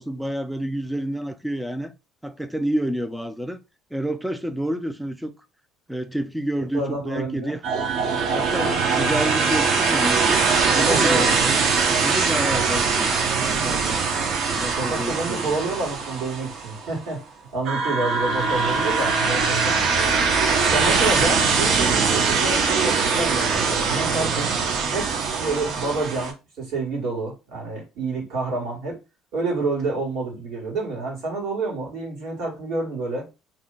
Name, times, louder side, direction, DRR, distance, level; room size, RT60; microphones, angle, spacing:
voice 1, 0.0-1.9 2.2-3.6 3.9-5.3 5.9-7.6 8.3-10.4 10.7-11.6 12.0-14.0 14.5-15.6, right 1 dB, ahead, 0.3 m, -29 dB
voice 2, 6.7-7.6 10.7-11.3 14.8-17.2 17.5-19.8 20.7-24.5 24.9-28.9 29.3-33.2, right 3 dB, 75° right, 1.6 m, -28 dB
sound 1, 7.6-16.9 17.7-26.3, right 5 dB, 50° right, 0.6 m, -22 dB
2.7 x 2.1 x 3.6 m
cardioid pair, 125°, 0 cm